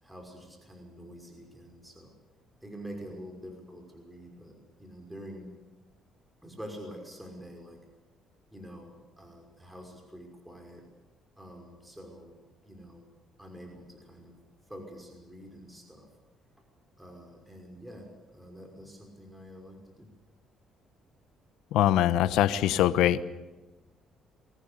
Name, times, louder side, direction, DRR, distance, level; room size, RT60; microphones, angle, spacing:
voice 1, 0.0-2.1 2.6-5.5 6.4-7.8 8.5-10.8 11.4-12.4 12.6-13.1 13.4-14.4 14.7-16.1 17.0-20.1, equal, 5° right, 2 dB, 5.8 m, -46 dB
voice 2, 21.7-23.2, left 12 dB, 85° left, 15 dB, 1.0 m, -23 dB
24.0 x 18.0 x 8.4 m, 1.1 s
cardioid pair, 110°, 0 cm